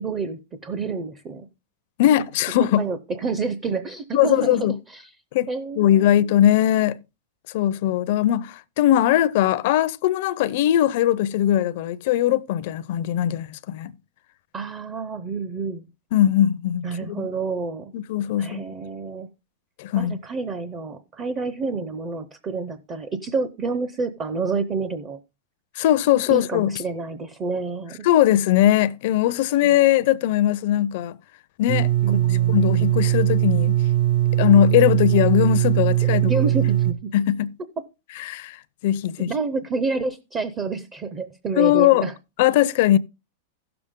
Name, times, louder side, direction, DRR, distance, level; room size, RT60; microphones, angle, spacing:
voice 1, 0.0-1.5 2.8-5.1 5.5-6.2 14.5-15.8 16.8-17.9 18.4-19.3 20.0-25.2 26.3-28.1 29.6-29.7 32.0-32.9 36.0-37.1 39.3-42.1, right 4 dB, 25° right, 0.6 m, -29 dB
voice 2, 2.0-2.8 4.1-4.8 5.3-5.5 5.8-7.0 7.5-13.9 16.1-17.3 17.9-18.6 19.8-20.2 25.8-26.7 28.0-31.2 31.6-31.9 32.5-33.8 34.4-36.2 37.1-37.5 38.2-38.6 38.8-39.3 41.6-42.0 42.4-43.0, left 12 dB, 55° left, 0.5 m, -20 dB
sound 1, 31.7-36.9, right 13 dB, 70° right, 1.0 m, -20 dB
15.5 x 6.8 x 3.6 m
supercardioid pair, 150°, 0 cm